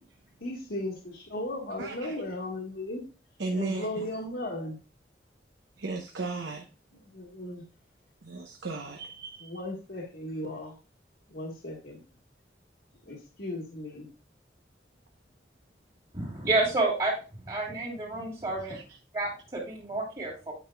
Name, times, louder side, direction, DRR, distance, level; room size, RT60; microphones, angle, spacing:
voice 1, 0.4-3.0 3.5-4.8 7.1-7.6 9.4-10.7 11.3-12.0 13.0-14.1, left 1 dB, 65° left, 1.4 m, -36 dB
voice 2, 1.8-2.2 3.4-4.1 5.8-6.7 8.2-9.6 18.6-19.0, right 3 dB, 85° right, 0.9 m, -36 dB
voice 3, 16.1-17.1 17.4-18.8 19.1-20.5, right 2 dB, 30° right, 2.6 m, -29 dB
9.3 x 5.6 x 2.3 m
head